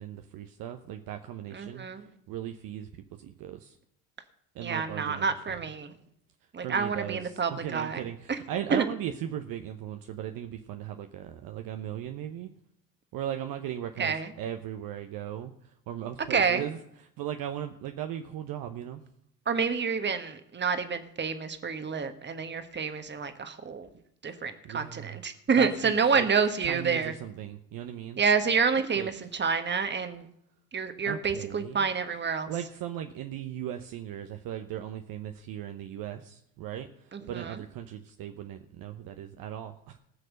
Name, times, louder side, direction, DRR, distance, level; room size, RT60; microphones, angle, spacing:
voice 1, 0.0-3.8 4.5-5.3 6.6-12.5 13.1-19.0 24.6-25.2 25.6-26.3 26.6-28.2 28.8-29.1 31.1-31.9 32.5-40.0, right 10 dB, 45° right, 6 dB, 1.0 m, -38 dB
voice 2, 1.5-2.1 4.6-5.9 6.5-8.0 8.3-8.4 8.7-8.8 14.0-14.3 16.3-16.6 19.4-23.9 24.2-27.1 28.2-30.3 30.7-32.5 37.1-37.6, right 5 dB, 20° right, 9 dB, 1.5 m, -28 dB
19.5 x 6.5 x 6.5 m, 0.75 s
figure-of-eight pair, 60°, 47 cm